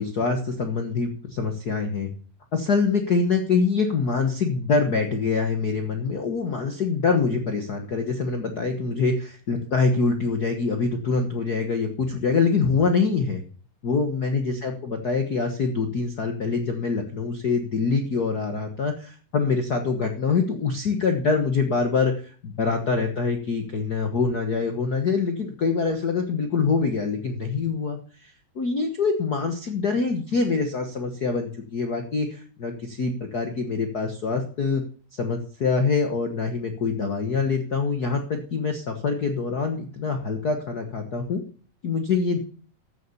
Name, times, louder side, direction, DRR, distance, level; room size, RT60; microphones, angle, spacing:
voice 1, 0.0-2.1 2.5-13.4 13.8-34.8 35.1-41.4 41.8-42.4, left 4 dB, 90° left, 5 dB, 0.8 m, -25 dB
13.5 x 6.8 x 7.1 m, 0.42 s
omnidirectional pair, 3.8 m